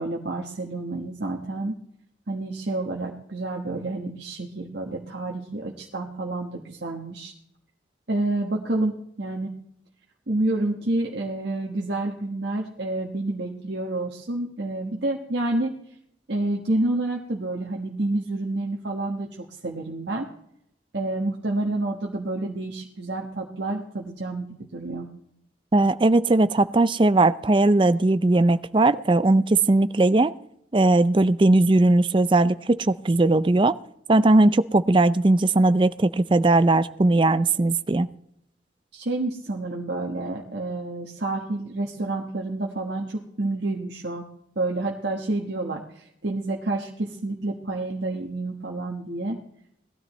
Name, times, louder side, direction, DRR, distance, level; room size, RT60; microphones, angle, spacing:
voice 1, 0.0-1.7 2.3-7.3 8.1-8.9 9.2-9.5 10.3-15.7 16.3-20.3 20.9-24.5 24.7-25.1 38.9-44.3 44.5-49.4, right 2 dB, 65° right, 0 dB, 1.4 m, -29 dB
voice 2, 25.7-30.3 30.7-33.8 34.1-38.1, right 2 dB, 25° right, 14 dB, 0.4 m, -19 dB
19.5 x 13.0 x 3.2 m, 0.73 s
head